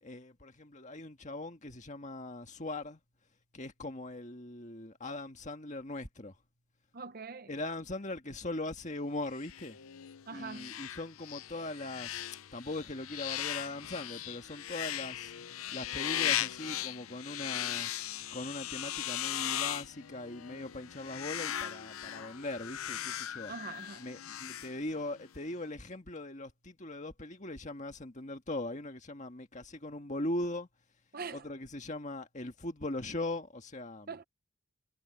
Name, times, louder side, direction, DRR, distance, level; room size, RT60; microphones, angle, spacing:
voice 1, 0.0-3.0 3.5-6.4 7.5-9.8 10.3-12.2 12.5-17.9 18.3-23.5 24.0-30.7 31.3-34.1, left 2 dB, 35° left, 1.8 m, -40 dB
voice 2, 6.9-7.5 10.3-10.7 23.5-24.1 31.1-31.5 34.1-34.2, right 4 dB, 40° right, 0.7 m, -43 dB
sound 1, 9.3-25.3, left 11 dB, 75° left, 0.7 m, -38 dB
head